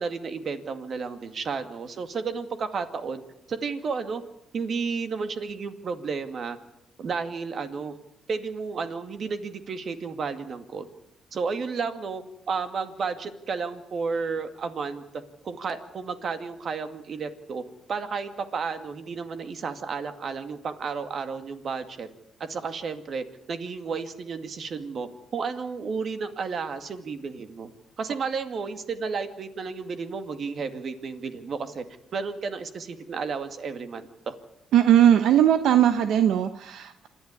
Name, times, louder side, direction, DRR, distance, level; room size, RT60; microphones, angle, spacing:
voice 1, 0.0-3.2 3.5-4.2 4.5-6.6 7.0-8.0 8.3-10.9 11.3-17.6 17.9-22.1 22.4-27.7 28.0-31.8 32.1-34.3, right 5 dB, 50° right, 8 dB, 2.3 m, -32 dB
voice 2, 34.7-37.1, right 10 dB, 80° right, 9 dB, 1.0 m, -19 dB
27.0 x 12.0 x 9.8 m, 0.84 s
cardioid pair, 90°, 0 cm